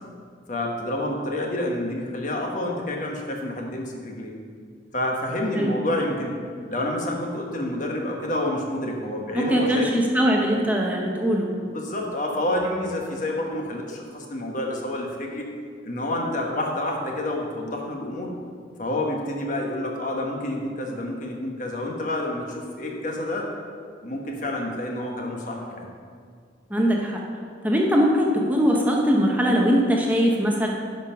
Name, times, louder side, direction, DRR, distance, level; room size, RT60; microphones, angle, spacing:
voice 1, 0.5-4.3 4.9-6.4 6.7-9.9 11.6-15.5 15.8-18.3 18.8-23.5 24.0-25.9, left 1 dB, 45° left, 0 dB, 1.3 m, -28 dB
voice 2, 9.3-11.5 26.7-27.2 27.6-30.7, equal, 10° right, -1 dB, 0.8 m, -21 dB
9.6 x 5.6 x 5.8 m, 2.1 s
head